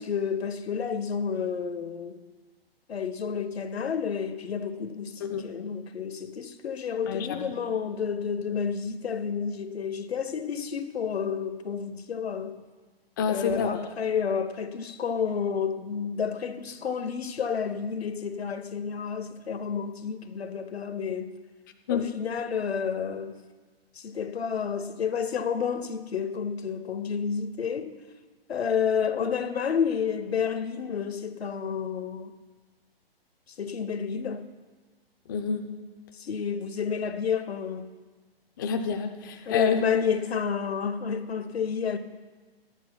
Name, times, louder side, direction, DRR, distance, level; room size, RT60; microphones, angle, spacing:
voice 1, 0.0-2.2 2.9-12.6 13.3-21.3 21.9-23.4 23.9-28.0 28.5-32.3 33.6-34.5 36.1-37.9 39.5-42.0, left 6 dB, 85° left, 1.0 m, -30 dB
voice 2, 7.1-7.5 13.2-13.7 21.9-22.1 35.3-35.7 38.6-39.8, left 6 dB, 20° left, 0.5 m, -28 dB
25.0 x 10.0 x 2.3 m
hypercardioid pair, 155°, 30 cm